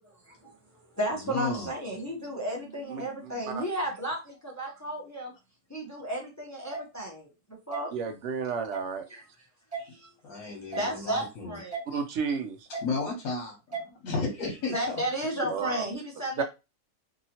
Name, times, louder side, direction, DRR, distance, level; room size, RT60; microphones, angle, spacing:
voice 1, 0.0-5.3 5.7-7.3 7.7-7.9 9.1-9.2 9.8-10.1 10.8-11.8 14.7-16.4, right 1 dB, 20° left, -1 dB, 0.4 m, -33 dB
voice 2, 1.1-1.7 10.2-11.6 11.9-12.0 12.7-15.0 15.4-15.5, left 3 dB, 75° left, 1 dB, 1.2 m, -33 dB
voice 3, 2.9-3.6 7.9-9.0 11.9-12.7 15.5-15.8 16.4-16.5, right 6 dB, 65° right, 6 dB, 0.8 m, -32 dB
sound 1, 6.7-6.8 7.7-7.8 8.7-8.9 9.7-9.8 10.7-10.9 11.7-11.8 12.7-12.9 13.7-13.8 14.7-14.9, right 4 dB, 25° right, 1.3 m, -35 dB
2.7 x 2.7 x 2.8 m, 0.27 s
omnidirectional pair, 1.5 m